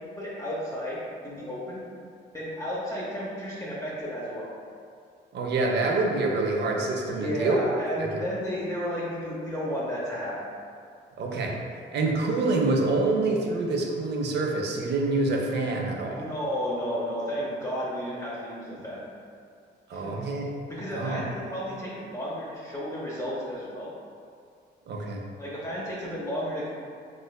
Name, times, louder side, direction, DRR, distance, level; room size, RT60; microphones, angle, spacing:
voice 1, 0.0-1.8 2.3-4.5 7.1-10.3 16.1-19.0 19.9-20.2 20.7-23.9 25.4-26.7, equal, 15° left, -8 dB, 0.6 m, -32 dB
voice 2, 5.3-7.6 8.0-8.2 11.2-11.6 11.9-16.3 19.9-20.5 20.9-21.2 24.9-25.2, right 3 dB, 60° right, 0 dB, 0.5 m, -26 dB
3.1 x 3.1 x 2.2 m, 2.3 s
cardioid pair, 90°, 20 cm